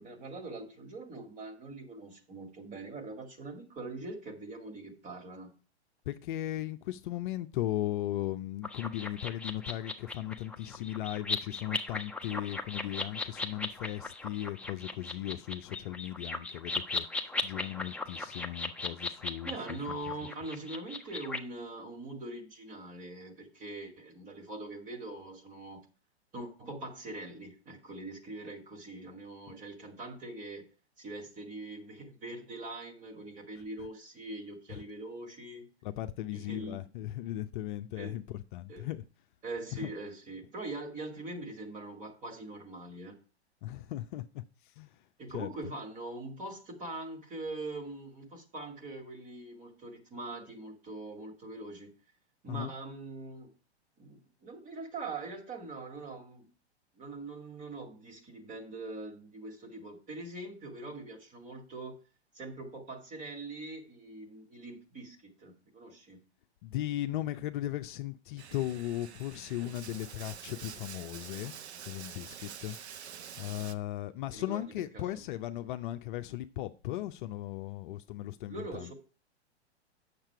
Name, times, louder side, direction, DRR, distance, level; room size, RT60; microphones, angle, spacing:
voice 1, 0.0-5.5 19.4-25.8 26.3-30.6 31.0-35.7 36.3-36.8 38.0-38.2 38.7-38.9 39.4-43.2 45.2-51.9 52.4-53.5 54.0-56.5 57.0-62.0 62.3-66.2 74.3-74.7 74.9-75.0 78.5-78.9, right 2 dB, 20° right, 2.3 m, -42 dB
voice 2, 6.1-20.0 29.5-29.6 34.7-34.8 35.8-39.0 39.7-39.9 43.6-45.0 45.3-45.5 52.5-52.7 66.6-71.5 71.9-72.8 73.4-78.9, left 14 dB, 45° left, 0.6 m, -37 dB
sound 1, 8.6-21.4, left 3 dB, 5° left, 0.6 m, -38 dB
Bathtub (filling or washing), 68.4-73.7, right 8 dB, 70° right, 1.0 m, -47 dB
8.9 x 6.8 x 4.7 m
hypercardioid pair, 110°, 34 cm